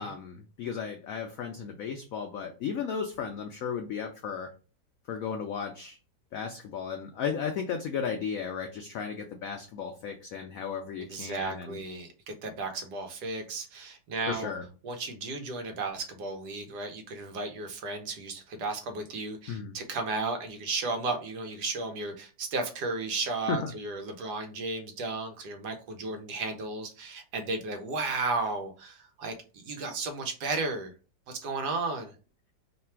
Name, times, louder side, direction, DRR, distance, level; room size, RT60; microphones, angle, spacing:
voice 1, 0.0-4.5 5.1-6.0 6.3-11.8 14.3-14.7 19.5-19.8 23.5-23.7, left 6 dB, 85° left, 4 dB, 0.7 m, -34 dB
voice 2, 11.0-14.5 14.8-29.4 29.6-30.9 31.4-32.1, right 3 dB, 70° right, 5 dB, 1.3 m, -34 dB
3.2 x 2.2 x 4.3 m, 0.34 s
omnidirectional pair, 2.0 m